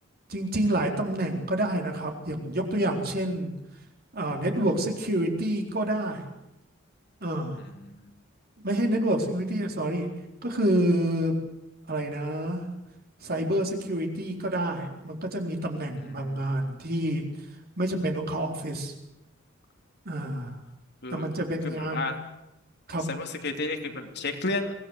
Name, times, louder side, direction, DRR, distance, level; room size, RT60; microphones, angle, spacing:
voice 1, 0.3-3.5 4.1-6.3 7.2-7.6 8.6-10.1 10.4-11.3 11.9-12.6 13.2-17.2 17.8-18.9 20.1-20.6 21.1-22.2 22.9-23.0, right 1 dB, 50° right, 3 dB, 4.1 m, -28 dB
voice 2, 7.6-8.1 16.0-16.6 20.3-20.4 21.0-21.3 21.6-22.2 23.1-24.7, left 3 dB, 55° left, 4 dB, 3.1 m, -33 dB
24.5 x 18.0 x 8.2 m, 0.89 s
head